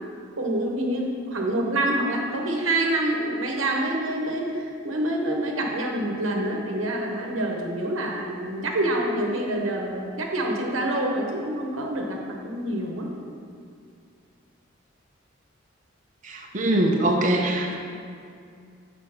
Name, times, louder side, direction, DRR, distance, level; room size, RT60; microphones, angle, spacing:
voice 1, 0.4-4.5 4.8-13.1, right 1 dB, 90° right, 0 dB, 1.0 m, -26 dB
voice 2, 16.2-17.7, right 1 dB, 40° right, 0 dB, 0.7 m, -23 dB
6.6 x 5.0 x 5.6 m, 2.3 s
head